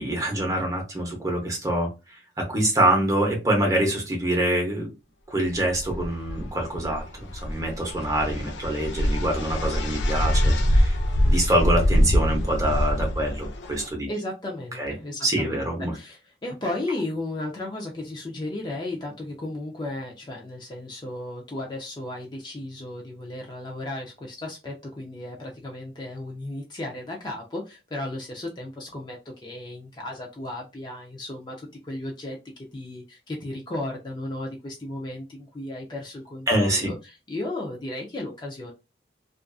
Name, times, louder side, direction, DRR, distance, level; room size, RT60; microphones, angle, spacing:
voice 1, 0.0-4.9 5.3-11.0 11.2-14.1 14.8-14.9 15.2-15.9 36.5-36.9, right 1 dB, 20° right, 0 dB, 0.7 m, -25 dB
sound 1, 5.5-13.9, equal, 85° left, 0.4 m, -24 dB
voice 2, 14.1-38.7, left 1 dB, 25° left, -1 dB, 0.4 m, -35 dB
2.5 x 2.4 x 2.3 m, 0.27 s
head